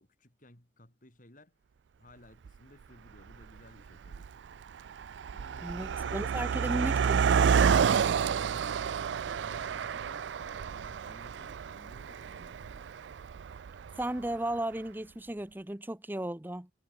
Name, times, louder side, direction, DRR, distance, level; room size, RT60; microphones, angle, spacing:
voice 1, 0.0-1.5 2.0-4.3 5.3-6.6 7.9-12.9, left 1 dB, 45° left, 4.4 m, -56 dB
Car passing by, 2.5-2.6 3.3-3.6 3.9-14.3, right 7 dB, 80° right, 0.4 m, -29 dB
voice 2, 5.6-7.5 14.0-16.7, right 1 dB, 10° right, 0.8 m, -35 dB
head